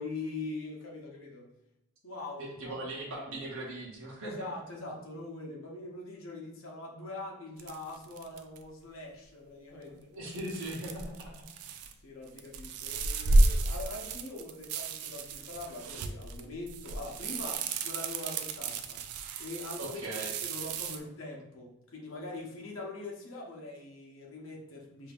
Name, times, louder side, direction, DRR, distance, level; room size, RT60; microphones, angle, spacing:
voice 1, 0.0-1.5 2.0-2.7 4.2-10.0 12.0-20.0 20.3-25.1, left 2 dB, 65° left, -2 dB, 0.8 m, -42 dB
voice 2, 2.4-4.5 9.8-11.3 19.8-20.3, right 1 dB, 65° right, -4 dB, 0.9 m, -39 dB
sound 1, 7.6-8.6 10.3-11.9 12.3-21.0, right 2 dB, 85° right, 0.4 m, -32 dB
5.2 x 2.7 x 2.4 m, 0.83 s
head